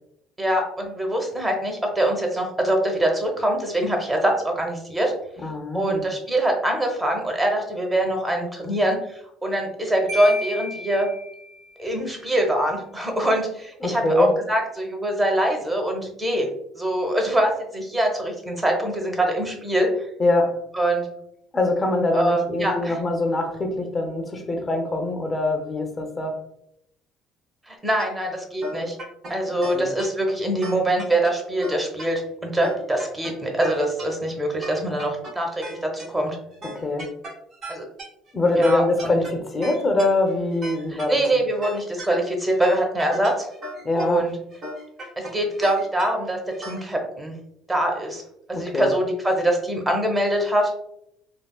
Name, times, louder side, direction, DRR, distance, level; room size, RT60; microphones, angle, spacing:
voice 1, 0.4-5.1 5.7-11.1 11.8-16.5 16.7-20.1 20.7-21.1 22.1-23.0 27.7-29.0 29.3-36.4 37.7-37.8 38.6-39.2 40.9-43.5 44.0-44.4 45.2-46.4 46.7-47.3 47.7-48.2 48.5-50.7, right 1 dB, 15° right, 2 dB, 0.9 m, -24 dB
voice 2, 5.4-6.1 13.8-14.3 20.2-20.6 21.5-26.4 29.7-29.9 36.6-37.1 38.3-41.2 43.8-44.3 48.5-48.9, left 2 dB, 30° left, 4 dB, 0.7 m, -23 dB
Marimba xylophone, 10.1-11.8, left 1 dB, 85° right, 1.4 m, -33 dB
sound 1, 28.0-28.1 28.6-29.3 29.6-30.0 30.6-31.3 31.6-32.0 32.6-33.3 33.6-34.0 34.5-36.0 36.5-46.8, equal, 50° right, 1.4 m, -36 dB
3.4 x 2.3 x 2.3 m, 0.77 s
supercardioid pair, 80°, 0 cm